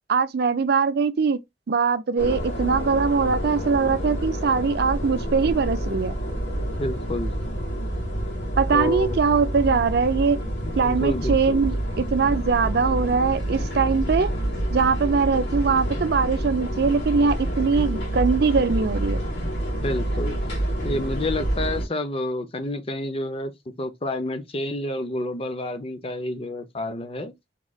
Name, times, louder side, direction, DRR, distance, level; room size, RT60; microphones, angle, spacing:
voice 1, 0.1-1.4 1.7-6.2 8.6-10.4 10.8-14.3 14.7-19.3, right 5 dB, 60° right, 0.4 m, -22 dB
sound 1, 2.2-21.8, right 1 dB, 75° left, 2.1 m, -28 dB
voice 2, 6.8-7.4 8.7-9.2 10.6-11.6 19.8-20.4 20.8-23.5 23.8-27.3, left 1 dB, 30° left, 0.6 m, -29 dB
3.6 x 3.1 x 2.3 m
head